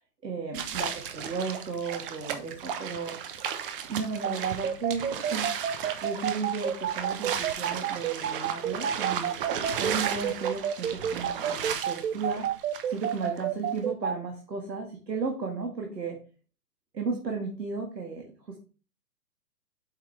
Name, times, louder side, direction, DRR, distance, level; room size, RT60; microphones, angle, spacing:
voice 1, 0.2-3.2 3.9-9.4 9.8-16.2 16.9-18.6, right 4 dB, 80° right, 2 dB, 1.9 m, -35 dB
sound 1, 0.5-13.4, right 8 dB, 35° right, 1.0 m, -35 dB
sound 2, 4.2-14.1, right 9 dB, 55° right, 0.7 m, -29 dB
8.5 x 6.0 x 3.3 m, 0.36 s
figure-of-eight pair, 120°, 49 cm